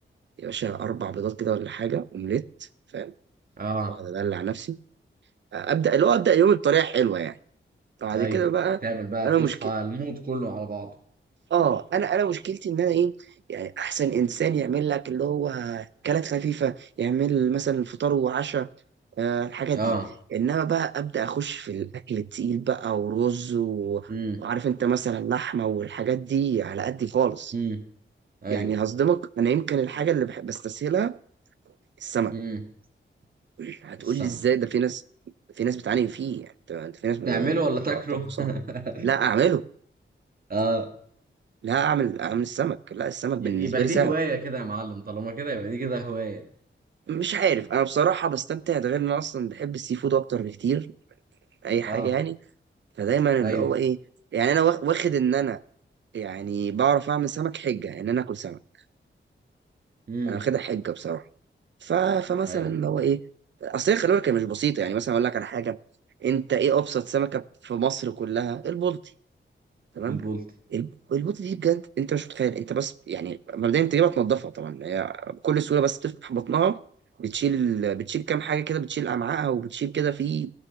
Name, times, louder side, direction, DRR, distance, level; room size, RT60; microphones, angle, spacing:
voice 1, 0.4-2.4 2.9-3.1 3.9-4.8 5.5-7.4 8.0-8.8 9.2-9.7 11.5-13.1 13.5-18.7 19.2-19.9 20.3-24.1 24.4-27.5 28.5-31.2 32.0-32.3 33.6-35.0 35.6-37.6 37.9-38.0 38.4-38.5 39.0-39.6 41.6-44.1 47.1-50.9 51.6-52.4 53.0-54.0 54.3-55.6 56.1-58.6 60.3-61.2 61.8-63.2 63.6-65.8 66.2-69.0 70.0-70.2 70.7-76.8 77.2-80.5, right 8 dB, 65° right, 0.5 m, -25 dB
voice 2, 3.6-4.0 8.1-8.5 8.8-10.9 19.7-20.1 24.1-24.4 27.5-27.8 28.4-28.7 32.3-32.6 34.0-34.4 37.2-39.1 40.5-40.9 43.4-46.4 51.8-52.1 53.4-53.7 60.1-60.5 62.5-62.7 70.1-70.5, right 3 dB, 45° right, 1.6 m, -29 dB
15.5 x 6.3 x 7.1 m
wide cardioid pair, 155°, 20 cm